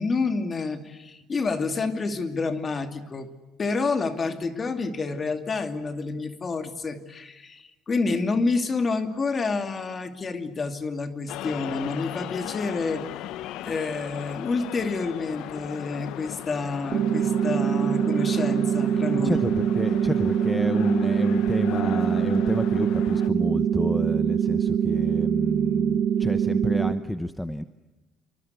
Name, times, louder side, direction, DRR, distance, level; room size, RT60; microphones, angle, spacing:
voice 1, 0.0-3.3 3.6-13.0 13.6-19.4, left 4 dB, 25° left, 8 dB, 2.6 m, -28 dB
sound 1, 11.3-23.3, left 13 dB, 70° left, 1.0 m, -38 dB
sound 2, 16.9-26.9, right 8 dB, 50° right, 1.6 m, -24 dB
voice 2, 19.1-27.6, left 1 dB, 5° left, 11 dB, 0.9 m, -29 dB
27.5 x 24.5 x 8.2 m, 1.1 s
cardioid pair, 150°, 0 cm